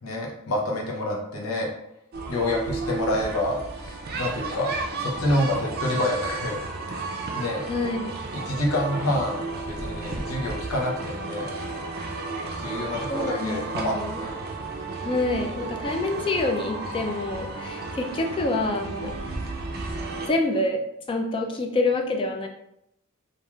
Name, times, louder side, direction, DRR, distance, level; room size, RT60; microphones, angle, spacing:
voice 1, 0.0-1.7 2.3-4.7 5.0-6.6 7.3-7.6 8.3-11.5 12.6-14.3, left 1 dB, 80° left, -1 dB, 0.7 m, -27 dB
sound 1, 2.1-20.3, right 3 dB, 45° right, 0.4 m, -33 dB
voice 2, 7.7-8.2 13.1-14.2 15.0-19.1 20.3-20.8 21.1-22.5, left 2 dB, 25° left, 2 dB, 0.3 m, -27 dB
3.0 x 2.4 x 2.3 m, 0.81 s
head